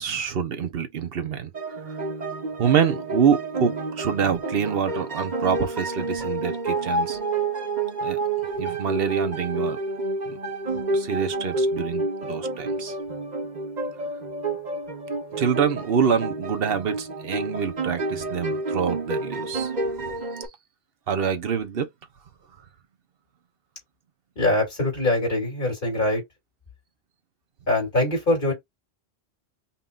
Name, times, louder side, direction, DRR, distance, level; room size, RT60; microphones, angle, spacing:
voice 1, 0.0-2.0 2.6-7.2 8.0-8.2 8.6-9.8 10.3-10.4 10.9-12.9 15.3-19.7 21.1-21.9, right 7 dB, 60° right, 1.0 m, -26 dB
sound 1, 1.5-20.5, right 2 dB, 40° right, 1.1 m, -29 dB
voice 2, 24.4-26.2 27.7-28.5, left 1 dB, 50° left, 3.1 m, -23 dB
5.5 x 2.7 x 2.5 m
omnidirectional pair, 1.1 m